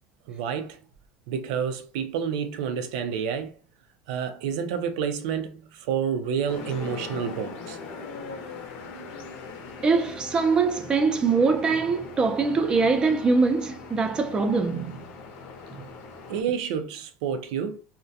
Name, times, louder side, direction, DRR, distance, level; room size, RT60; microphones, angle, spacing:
voice 1, 0.3-0.8 1.3-3.5 4.1-7.8 16.3-17.8, right 7 dB, 85° right, 0.4 m, -29 dB
sound 1, 6.5-16.4, left 4 dB, 60° left, 0.7 m, -41 dB
voice 2, 9.8-15.1, right 4 dB, 25° right, 0.4 m, -23 dB
2.4 x 2.1 x 2.6 m
supercardioid pair, 135°, 4 cm